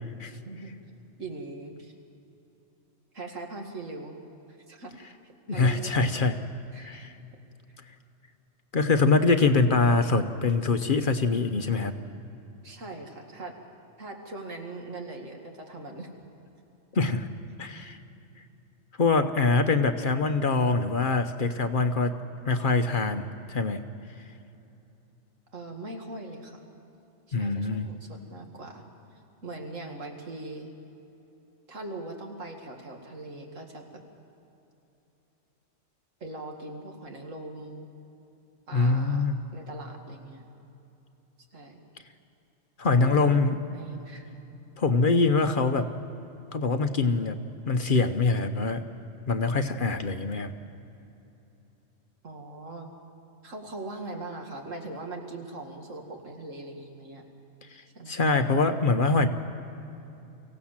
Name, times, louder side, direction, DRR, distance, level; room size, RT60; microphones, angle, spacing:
voice 1, 1.2-1.9 3.1-4.2 4.5-4.9 5.2-6.1 6.7-7.1 12.6-13.6 14.0-16.1 25.5-26.6 27.3-28.9 29.4-30.7 31.7-34.0 36.2-37.9 38.7-40.4 41.5-41.8 42.9-44.3 52.2-52.9 53.4-57.2 57.9-58.1, right 2 dB, 85° right, 2 dB, 2.5 m, -41 dB
voice 2, 5.5-6.4 6.8-7.1 8.7-11.9 16.9-17.3 17.6-18.0 19.0-22.2 22.5-23.8 27.3-27.9 38.7-39.4 42.8-43.6 44.8-45.9 46.5-47.4 47.7-48.8 49.3-50.5 57.7-59.3, left 3 dB, 45° left, 8 dB, 0.9 m, -24 dB
24.0 x 16.5 x 7.4 m, 2.9 s
omnidirectional pair, 1.3 m